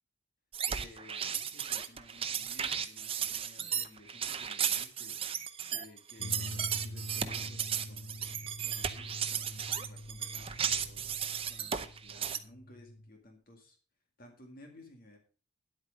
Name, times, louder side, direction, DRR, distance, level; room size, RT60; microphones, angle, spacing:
sound 1, 0.5-12.4, right 8 dB, 25° right, 0.6 m, -35 dB
voice 1, 0.7-5.2 5.7-8.2 8.6-11.1 11.5-13.8 14.2-15.2, left 1 dB, 45° left, 3 dB, 2.0 m, -56 dB
sound 2, 6.2-13.1, left 1 dB, 75° left, 0.9 m, -45 dB
sound 3, 6.5-13.0, right 1 dB, 5° right, 5.3 m, -62 dB
10.0 x 8.5 x 5.2 m, 0.37 s
head